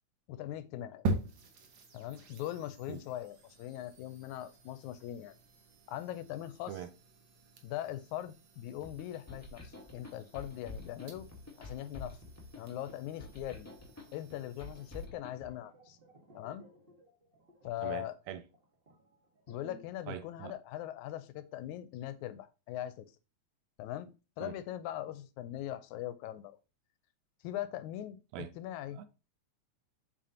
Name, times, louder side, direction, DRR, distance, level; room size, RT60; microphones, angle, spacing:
voice 1, 0.3-1.1 1.9-5.4 5.9-6.8 7.6-11.3 11.6-12.2 12.6-13.7 14.1-16.0 16.3-16.7 17.6-18.2 19.5-23.1 23.8-26.5 27.4-28.2 28.6-29.0, left 13 dB, 85° left, 2.0 m, -41 dB
sound 1, 1.1-15.1, right 2 dB, 60° right, 1.2 m, -44 dB
sound 2, 8.8-15.5, left 2 dB, 10° left, 0.9 m, -48 dB
sound 3, 15.3-20.1 20.3-20.6, right 1 dB, 40° right, 0.8 m, -59 dB
voice 2, 17.8-18.4 20.1-20.5 24.4-24.5 28.3-28.5 28.9-29.1, right 10 dB, 80° right, 1.8 m, -42 dB
7.7 x 5.1 x 2.8 m
omnidirectional pair, 3.4 m